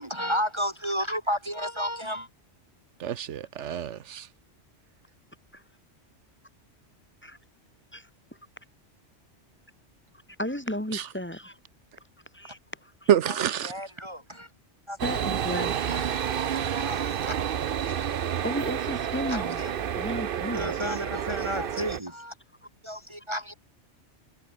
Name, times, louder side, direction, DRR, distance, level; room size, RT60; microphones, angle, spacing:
voice 1, 0.0-2.3 13.6-14.5 14.9-15.0 15.9-17.4 17.9-18.0 19.3-19.7 20.5-22.3 22.8-23.5, equal, 25° right, 1.9 m, -32 dB
voice 2, 3.0-4.3 10.9-11.1 13.1-13.7, right 10 dB, 75° right, 1.1 m, -26 dB
voice 3, 10.4-11.6 12.3-13.1 15.0-16.0 18.4-19.6 19.9-20.8, left 1 dB, 10° left, 2.1 m, -34 dB
sound 1, 15.0-22.0, right 9 dB, 55° right, 0.8 m, -30 dB
omnidirectional pair, 1.2 m